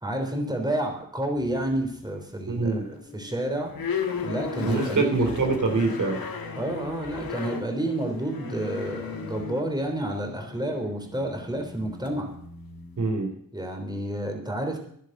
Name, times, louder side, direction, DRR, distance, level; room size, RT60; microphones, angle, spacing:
voice 1, 0.0-3.7 4.2-5.3 6.6-12.3 13.5-14.8, right 1 dB, 10° right, 3 dB, 3.5 m, -30 dB
sound 1, 1.3-2.1 2.5-13.1, left 5 dB, 80° left, 1.9 m, -36 dB
voice 2, 2.5-2.9 4.6-6.2 13.0-13.3, right 3 dB, 55° right, 3 dB, 3.0 m, -24 dB
11.0 x 11.0 x 7.8 m, 0.66 s
cardioid pair, 70°, 35 cm